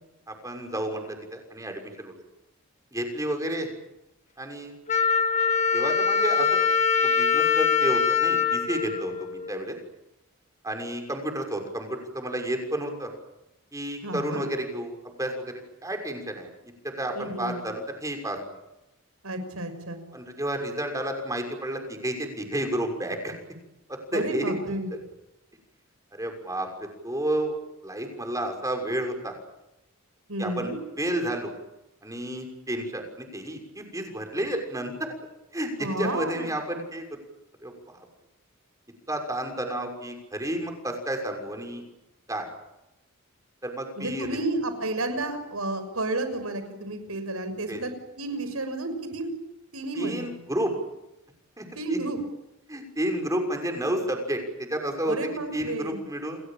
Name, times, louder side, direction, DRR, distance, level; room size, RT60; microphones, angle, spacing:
voice 1, 0.3-2.1 2.9-3.7 4.4-4.7 5.7-6.7 7.0-9.8 10.6-13.1 13.7-15.5 15.8-16.5 16.8-18.4 20.1-23.3 23.9-24.5 26.1-27.5 27.8-29.3 30.4-30.7 31.0-31.5 32.0-35.1 35.5-37.0 37.6-38.0 39.1-41.8 42.3-42.5 43.6-44.4 47.7-47.8 49.9-50.7 51.6-52.0 52.7-55.2 55.5-56.4, right 1 dB, 15° right, 4 dB, 6.2 m, -31 dB
Wind instrument woodwind instrument, 4.9-9.7, left 6 dB, 30° left, 2.0 m, -23 dB
voice 2, 14.0-14.5 17.1-17.6 19.2-20.0 24.1-24.9 30.3-30.8 35.8-36.5 44.0-47.9 48.2-49.3 49.7-50.3 51.8-52.2 55.1-56.0, right 2 dB, 90° right, 9 dB, 6.3 m, -31 dB
30.0 x 21.5 x 9.0 m, 0.92 s
head